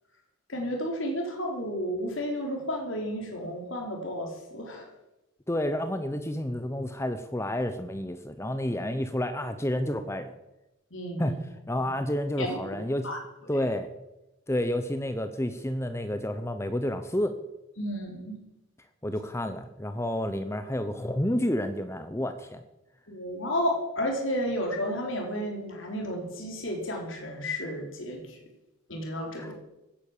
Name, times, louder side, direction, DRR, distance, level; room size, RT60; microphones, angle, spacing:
voice 1, 0.5-4.9 10.9-11.4 11.8-11.9 12.4-12.6 13.0-13.2 17.8-18.4 23.1-28.4 28.9-29.5, equal, 65° left, 2 dB, 4.1 m, -32 dB
voice 2, 5.5-10.3 11.2-11.4 11.7-13.1 13.5-13.9 14.5-17.4 19.0-22.6 29.4-29.5, left 1 dB, 10° left, 9 dB, 0.8 m, -30 dB
16.5 x 9.8 x 7.3 m, 0.96 s
head